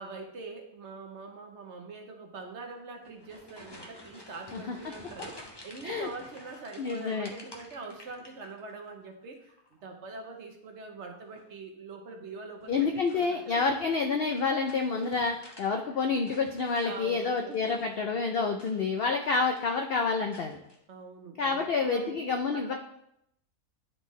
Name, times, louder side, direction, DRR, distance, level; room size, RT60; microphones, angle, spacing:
voice 1, 0.0-13.6 15.7-15.8 16.1-16.2 16.8-17.8 20.9-22.2 22.5-22.7, right 3 dB, 55° right, 4 dB, 0.9 m, -44 dB
sound 1, 2.9-8.9 9.2-9.8 11.2-11.6 12.6-15.7 16.0-18.0 18.5-19.1 19.4-19.8 20.3-20.8, left 1 dB, 25° left, 0.5 m, -51 dB
voice 2, 6.8-7.3 12.7-20.6 21.4-22.7, left 4 dB, 85° left, 4 dB, 0.5 m, -28 dB
10.5 x 3.8 x 3.1 m, 0.77 s
omnidirectional pair, 1.6 m